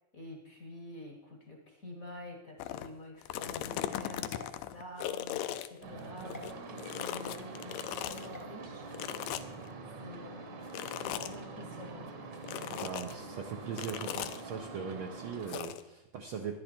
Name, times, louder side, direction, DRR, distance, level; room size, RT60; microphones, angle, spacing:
voice 1, 0.1-8.9 10.0-10.7 11.0-12.1, left 1 dB, 50° left, 2 dB, 1.0 m, -48 dB
sound 1, 2.6-2.9 3.2-6.5 6.8-8.3 8.9-9.7 10.7-11.4 12.4-13.1 13.8-14.4 15.5-15.8, left 12 dB, 80° left, 1.8 m, -38 dB
sound 2, 4.2-5.3 6.3-6.5 8.3-8.5, left 1 dB, 25° left, 0.3 m, -51 dB
sound 3, 5.8-15.6, right 3 dB, 50° right, 1.4 m, -45 dB
voice 2, 12.7-16.6, right 6 dB, 80° right, 2 dB, 1.1 m, -40 dB
12.0 x 11.0 x 4.4 m, 0.95 s
omnidirectional pair, 3.4 m